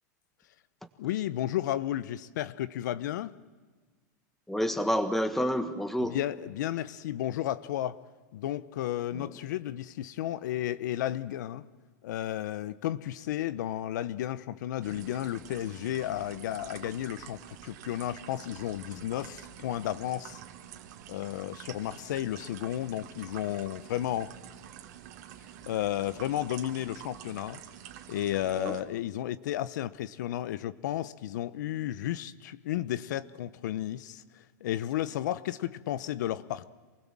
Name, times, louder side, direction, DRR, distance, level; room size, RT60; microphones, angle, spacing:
voice 1, 1.0-3.3 6.0-8.0 8.3-11.7 12.0-20.4 21.1-24.3 25.6-27.6 28.1-36.7, left 12 dB, 75° left, 0.9 m, -33 dB
voice 2, 4.5-6.2 9.1-9.3 28.5-28.8, equal, 5° left, 1.5 m, -29 dB
sound 1, 14.8-28.8, right 10 dB, 65° right, 2.3 m, -48 dB
27.5 x 20.0 x 7.5 m
supercardioid pair, 150°, 10 cm